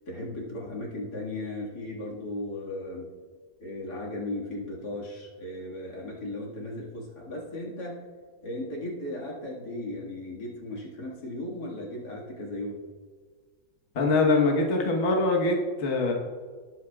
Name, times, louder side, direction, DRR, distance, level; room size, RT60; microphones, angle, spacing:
voice 1, 0.1-3.1 3.6-8.0 8.4-12.8, left 1 dB, 90° left, -3 dB, 2.6 m, -36 dB
voice 2, 13.9-16.1, left 3 dB, 45° left, 0 dB, 1.5 m, -23 dB
19.0 x 8.3 x 2.4 m, 1.5 s
omnidirectional pair, 1.7 m